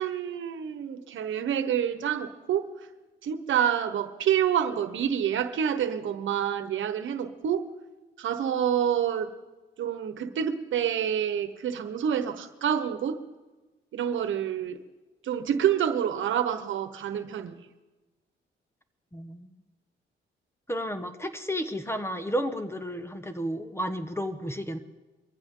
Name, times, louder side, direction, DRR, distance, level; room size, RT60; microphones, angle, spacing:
voice 1, 0.0-2.7 3.2-7.7 8.2-9.4 9.8-13.2 13.9-14.8 15.2-17.6, right 9 dB, 75° right, 10 dB, 1.2 m, -27 dB
voice 2, 19.1-19.5 20.7-24.8, equal, 10° left, 9 dB, 1.3 m, -32 dB
22.5 x 15.0 x 3.9 m, 1.2 s
cardioid pair, 80°, 20 cm